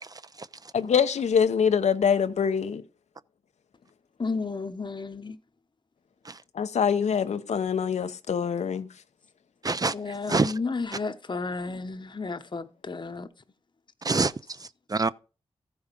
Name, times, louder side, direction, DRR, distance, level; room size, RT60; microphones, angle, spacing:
voice 1, 0.0-0.5 6.2-6.4 9.6-9.9 10.3-10.5 14.0-15.1, right 3 dB, 35° right, 0.5 m, -27 dB
voice 2, 0.7-2.8 6.5-8.9, left 7 dB, 80° left, 0.7 m, -24 dB
voice 3, 4.2-5.4 9.9-13.3, left 4 dB, 40° left, 0.9 m, -32 dB
14.0 x 4.9 x 5.2 m
cardioid pair, 65°, 11 cm